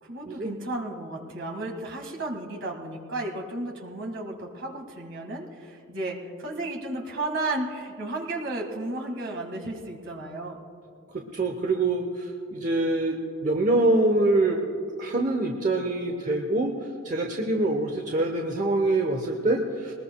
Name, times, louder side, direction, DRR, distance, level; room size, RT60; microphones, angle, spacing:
voice 1, 0.0-10.6, right 2 dB, 60° right, 1 dB, 1.9 m, -33 dB
voice 2, 11.1-14.6 15.0-19.9, right 2 dB, 35° right, 2 dB, 0.8 m, -25 dB
22.5 x 20.0 x 2.3 m, 2.5 s
head